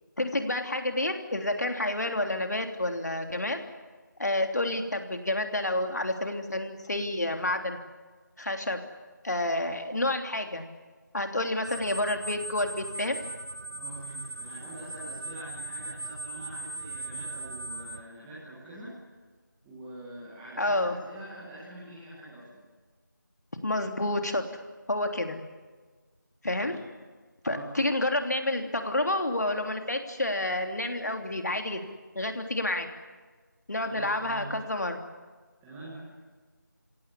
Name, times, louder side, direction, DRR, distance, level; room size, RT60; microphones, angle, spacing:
voice 1, 0.2-3.6 4.2-7.8 8.4-8.8 9.2-10.6 11.1-13.2 20.6-21.0 23.6-24.4 24.9-25.4 26.4-26.8 27.4-31.8 32.1-32.9 33.7-35.0, left 1 dB, 55° left, 5 dB, 3.1 m, -29 dB
sound 1, 11.6-18.0, right 3 dB, 45° right, 1.0 m, -39 dB
voice 2, 13.8-19.0 19.6-22.6 26.5-26.8 27.4-27.9 28.1-28.2 33.7-34.5 35.6-36.0, right 1 dB, 5° right, -8 dB, 1.5 m, -45 dB
29.5 x 17.5 x 9.9 m, 1.4 s
figure-of-eight pair, 175°, 11 cm